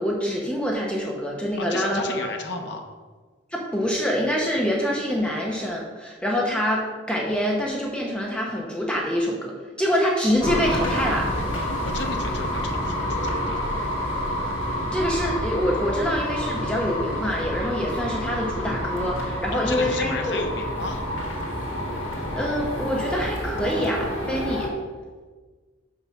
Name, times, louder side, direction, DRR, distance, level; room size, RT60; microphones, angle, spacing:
voice 1, 0.0-2.2 3.5-11.3 14.9-20.4 22.4-24.7, equal, 5° left, -2 dB, 0.8 m, -25 dB
voice 2, 1.6-2.9 11.6-13.8 19.5-21.0, left 3 dB, 60° left, 4 dB, 1.0 m, -33 dB
sound 1, 10.4-24.7, equal, 75° left, 1.9 m, -28 dB
5.8 x 5.7 x 5.8 m, 1.4 s
head